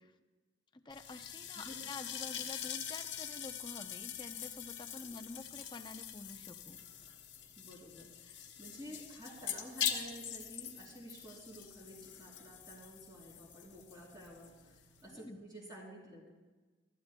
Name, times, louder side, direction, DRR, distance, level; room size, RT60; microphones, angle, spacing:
sound 1, 0.9-15.1, left 9 dB, 70° left, 1.2 m, -44 dB
voice 1, 0.9-6.8 15.1-15.4, left 2 dB, 25° left, 6 dB, 0.6 m, -49 dB
voice 2, 7.6-16.2, equal, 20° right, -4 dB, 3.6 m, -51 dB
23.5 x 13.5 x 2.3 m, 1.3 s
head